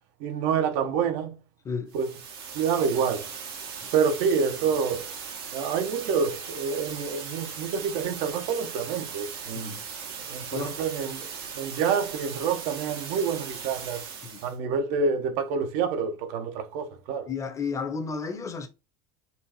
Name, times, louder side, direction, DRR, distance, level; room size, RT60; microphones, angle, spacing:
voice 1, 0.2-1.4 1.9-2.1 2.5-3.3 3.9-5.1 5.5-9.8 10.3-11.3 11.6-14.0 14.4-17.3, right 6 dB, 65° right, 0.9 m, -27 dB
sound 1, 1.9-14.6, right 6 dB, 90° right, 1.6 m, -38 dB
voice 2, 17.3-18.7, left 5 dB, 25° left, 0.9 m, -33 dB
4.4 x 2.5 x 4.3 m
supercardioid pair, 105°, 12 cm